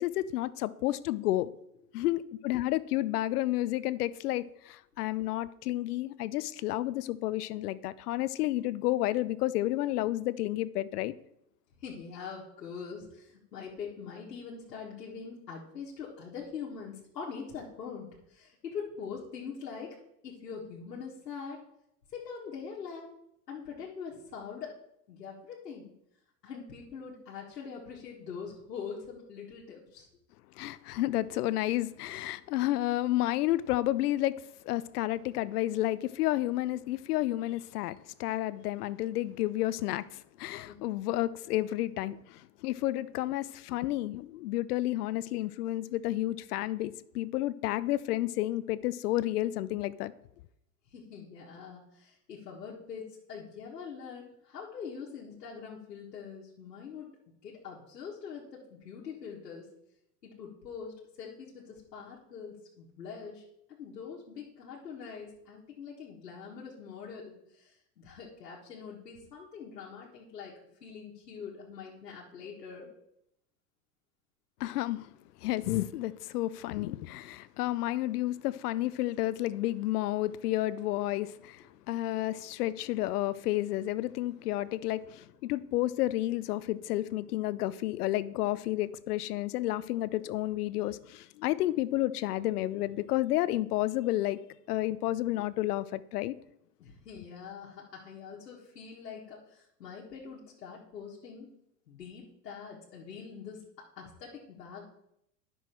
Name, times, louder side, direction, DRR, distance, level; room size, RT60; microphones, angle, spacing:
voice 1, 0.0-1.5 1.9-11.1 30.6-50.1 74.6-75.1 75.4-94.4 94.7-96.4, left 15 dB, 70° left, 0.6 m, -31 dB
voice 2, 11.8-20.0 20.2-21.6 22.1-23.1 23.5-24.8 25.1-25.9 26.4-30.1 40.6-40.8 50.9-57.1 57.4-59.7 60.2-70.5 70.8-72.9 96.8-101.5 101.9-103.6 104.0-104.8, left 6 dB, 90° left, 1.6 m, -43 dB
9.1 x 6.2 x 4.4 m
hypercardioid pair, 100°, 47 cm